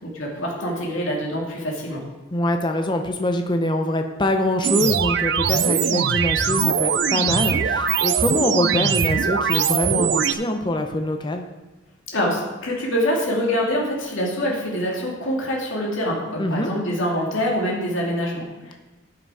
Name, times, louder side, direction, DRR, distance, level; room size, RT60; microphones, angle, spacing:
voice 1, 0.0-2.0 12.1-18.7, equal, 80° left, -2 dB, 2.4 m, -25 dB
voice 2, 2.3-11.5 16.4-16.7, left 1 dB, 25° left, 5 dB, 0.7 m, -24 dB
sound 1, 4.6-10.3, right 7 dB, 60° right, 0.5 m, -21 dB
11.5 x 5.9 x 4.8 m, 1.1 s
head